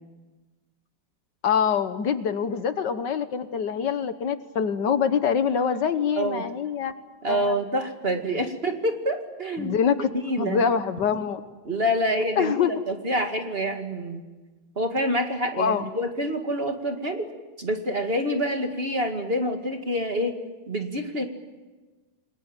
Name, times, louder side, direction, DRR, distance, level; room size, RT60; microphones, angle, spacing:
voice 1, 1.4-6.9 7.3-7.5 8.1-8.4 9.6-10.1 10.4-11.4 12.4-12.7 15.6-15.8, left 7 dB, 65° left, 10 dB, 1.7 m, -25 dB
voice 2, 6.2-6.5 7.2-9.8 10.2-10.6 11.7-14.2 14.8-17.3 17.6-20.4 20.7-21.3, equal, 30° right, 4 dB, 2.2 m, -27 dB
28.0 x 20.5 x 9.1 m, 1.3 s
omnidirectional pair, 2.1 m